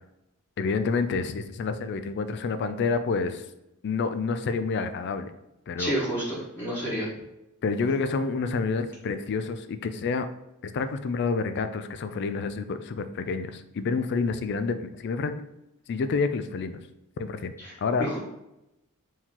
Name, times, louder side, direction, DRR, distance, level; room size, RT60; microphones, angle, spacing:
voice 1, 0.6-3.4 3.8-5.3 5.7-5.9 7.6-10.3 10.6-15.4 15.9-16.8 17.2-17.5 17.8-18.1, left 4 dB, 50° left, 10 dB, 0.3 m, -28 dB
voice 2, 5.8-7.1 17.6-17.7 18.0-18.2, right 1 dB, 10° left, -8 dB, 1.3 m, -29 dB
4.5 x 2.9 x 3.7 m, 0.89 s
head